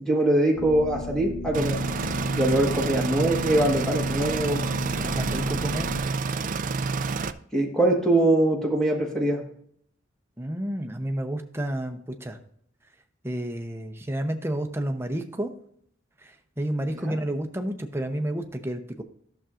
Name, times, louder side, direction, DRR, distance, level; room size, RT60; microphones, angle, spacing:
voice 1, 0.0-1.8 2.3-4.6 7.5-9.4 16.9-17.1, right 1 dB, 5° left, -1 dB, 1.5 m, -23 dB
sound 1, 0.5-6.0, left 3 dB, 75° left, 2.2 m, -36 dB
sound 2, 1.5-7.3, right 4 dB, 40° right, 0.4 m, -28 dB
voice 2, 5.1-5.9 10.4-12.4 13.2-15.5 16.2-19.0, right 1 dB, 10° right, 5 dB, 0.7 m, -30 dB
11.5 x 6.8 x 2.5 m, 0.65 s
head